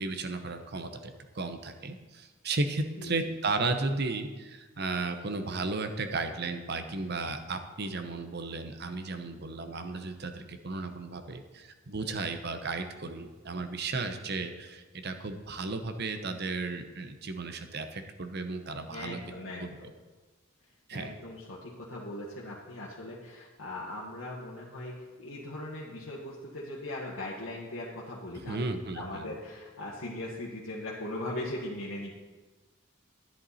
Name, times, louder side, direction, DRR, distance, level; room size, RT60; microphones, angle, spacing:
voice 1, 0.0-19.2 19.6-19.8 20.9-21.1 28.3-29.3, right 3 dB, 55° right, 7 dB, 0.9 m, -34 dB
voice 2, 18.9-19.9 20.9-28.6 28.9-32.1, left 1 dB, 90° left, -6 dB, 1.6 m, -39 dB
10.5 x 10.5 x 4.2 m, 1.3 s
head